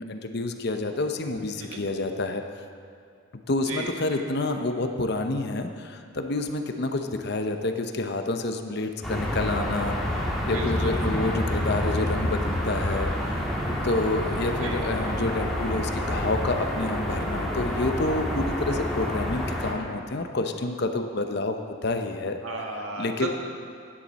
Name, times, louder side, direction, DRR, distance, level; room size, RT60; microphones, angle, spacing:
voice 1, 0.0-2.4 3.5-13.1 13.6-22.4 23.0-23.3, left 2 dB, 50° left, 6 dB, 0.8 m, -28 dB
voice 2, 3.7-4.3 10.5-11.2 14.6-14.9 22.4-23.3, right 2 dB, 85° right, 0 dB, 1.7 m, -35 dB
sound 1, 9.0-19.7, equal, ahead, 1.7 m, -28 dB
15.5 x 9.9 x 4.2 m, 2.6 s
head